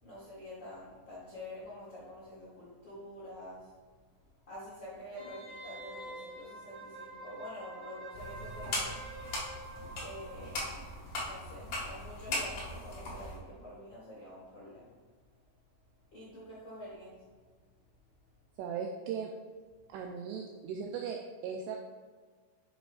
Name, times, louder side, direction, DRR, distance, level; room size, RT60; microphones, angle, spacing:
voice 1, 0.0-3.7 4.5-9.0 9.9-10.7 11.2-14.9 16.1-17.1, left 1 dB, 85° left, -8 dB, 1.0 m, -47 dB
Wind instrument woodwind instrument, 5.2-10.7 11.0-11.1, right 2 dB, 55° right, 2.6 m, -47 dB
sound 1, 8.1-13.4, left 1 dB, 60° left, 1.4 m, -39 dB
voice 2, 18.6-19.3 19.9-21.8, right 6 dB, 90° right, 1 dB, 2.4 m, -38 dB
9.0 x 6.8 x 2.4 m, 1.5 s
omnidirectional pair, 5.3 m